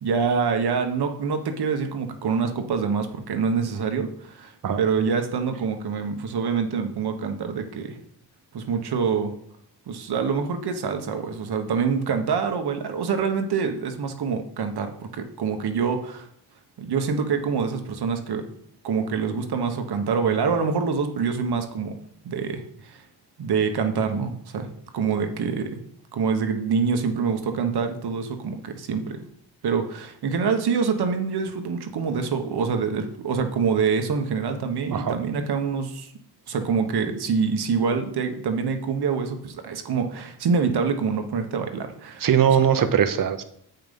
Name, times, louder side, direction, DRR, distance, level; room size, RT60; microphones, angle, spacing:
voice 1, 0.0-8.0 8.5-9.3 9.9-16.3 16.8-18.5 18.8-22.0 22.2-23.0 23.4-24.7 24.9-25.8 26.1-29.2 29.6-36.1 36.5-42.3, right 5 dB, 65° right, 6 dB, 1.3 m, -25 dB
voice 2, 42.2-43.4, right 8 dB, 50° right, 10 dB, 0.9 m, -20 dB
8.0 x 5.8 x 5.3 m, 0.67 s
cardioid pair, 115°, 41 cm